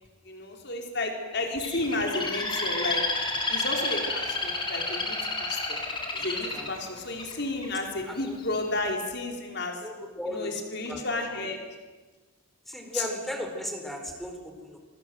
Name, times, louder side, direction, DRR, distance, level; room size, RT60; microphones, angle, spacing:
voice 1, 0.3-3.0 3.5-5.6 6.1-9.8 10.3-11.6 12.9-13.1, left 2 dB, 50° left, 2 dB, 4.4 m, -32 dB
Bird, 1.6-7.7 8.2-8.6, left 2 dB, 20° left, 3.7 m, -30 dB
voice 2, 8.1-8.4 9.8-11.3 12.7-14.8, equal, ahead, 4 dB, 4.3 m, -37 dB
27.5 x 24.5 x 7.8 m, 1.3 s
head